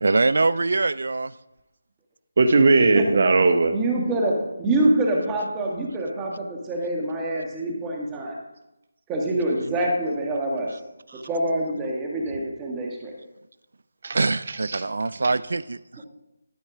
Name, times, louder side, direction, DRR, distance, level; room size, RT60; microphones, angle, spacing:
voice 1, 0.0-1.3 11.1-11.2 14.1-16.0, right 3 dB, 70° right, 18 dB, 0.4 m, -23 dB
voice 2, 2.4-3.7 14.0-14.8 15.2-15.3, right 3 dB, 50° right, 7 dB, 1.0 m, -19 dB
voice 3, 3.7-8.4 9.1-10.7 11.2-13.1, right 1 dB, 15° right, -1 dB, 1.4 m, -25 dB
12.5 x 4.4 x 4.8 m, 0.93 s
figure-of-eight pair, 160°, 0 cm